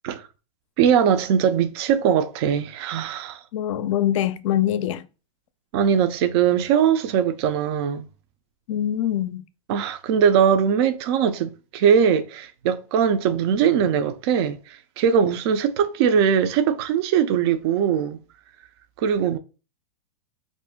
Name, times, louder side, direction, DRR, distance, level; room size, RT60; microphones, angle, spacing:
voice 1, 0.8-3.4 5.7-8.1 9.7-18.2 19.0-19.4, right 8 dB, 45° right, 0.4 m, -21 dB
voice 2, 3.5-5.0 8.7-9.4, left 11 dB, 60° left, 0.4 m, -23 dB
2.5 x 2.1 x 3.5 m
hypercardioid pair, 140°, 19 cm